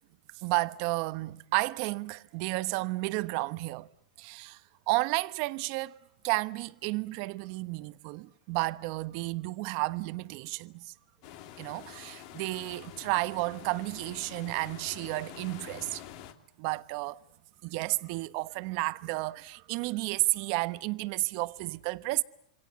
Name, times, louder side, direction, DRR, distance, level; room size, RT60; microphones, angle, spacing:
voice 1, 0.3-3.9 4.2-4.6 4.9-6.0 6.2-10.9 11.6-16.0 16.6-17.2 17.6-22.2, right 23 dB, 50° right, 1.1 m, -32 dB
sound 1, 11.2-16.3, left 11 dB, 50° left, 3.1 m, -47 dB
27.5 x 26.0 x 8.1 m
hypercardioid pair, 135°, 4 cm